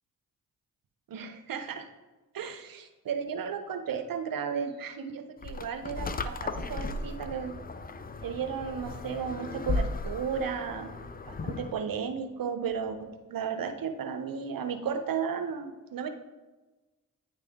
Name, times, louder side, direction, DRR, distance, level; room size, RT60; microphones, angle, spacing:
voice 1, 1.1-1.8 2.3-7.5 8.2-10.9 11.3-16.1, right 6 dB, 60° right, 7 dB, 0.8 m, -34 dB
sound 1, 5.4-11.8, left 3 dB, 25° left, 0.5 m, -36 dB
9.1 x 3.3 x 3.6 m, 1.2 s
supercardioid pair, 45°, 39 cm